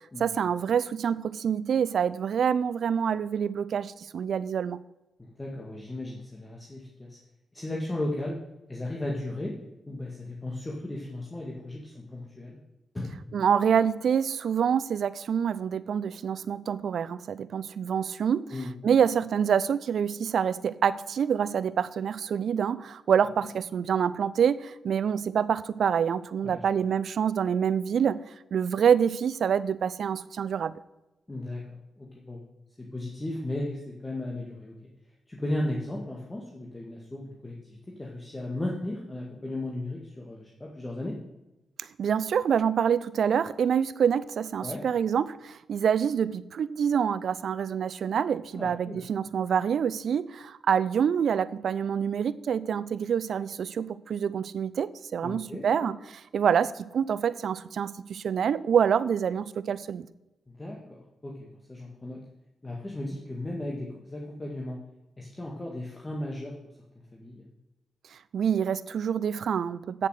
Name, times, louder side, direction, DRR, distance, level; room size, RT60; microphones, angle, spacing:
voice 1, 0.2-4.8 13.3-18.5 18.8-28.2 28.5-30.7 41.8-56.0 56.3-60.1 68.3-70.1, right 7 dB, 70° right, 17 dB, 0.5 m, -26 dB
voice 2, 5.2-7.2 7.5-8.4 8.7-9.5 9.9-12.6 12.9-13.3 18.5-18.7 26.4-26.7 31.3-31.6 32.0-32.4 32.8-34.7 35.3-41.2 44.6-44.8 48.5-49.0 55.2-55.9 60.5-62.2 62.6-64.8 65.2-66.5 67.0-67.4, left 1 dB, 20° left, -2 dB, 2.0 m, -35 dB
9.3 x 7.1 x 6.5 m, 0.96 s
cardioid pair, 65°, 0 cm